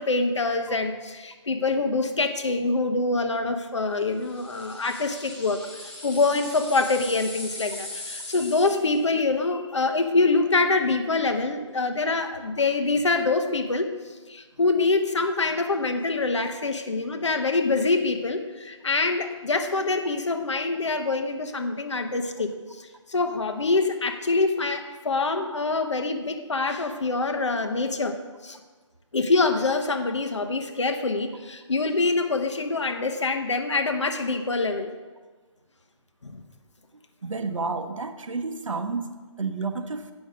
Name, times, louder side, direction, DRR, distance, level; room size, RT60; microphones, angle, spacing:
voice 1, 0.0-13.9 14.3-22.5 22.8-28.1 28.4-28.6 29.1-34.9 36.2-36.4, left 3 dB, 65° left, 6 dB, 1.0 m, -25 dB
sound 1, 4.2-9.0, left 2 dB, 15° left, 0.9 m, -39 dB
voice 2, 37.2-39.1 39.4-40.1, right 4 dB, 80° right, 7 dB, 0.9 m, -30 dB
8.6 x 6.2 x 5.0 m, 1.3 s
hypercardioid pair, 175°, 16 cm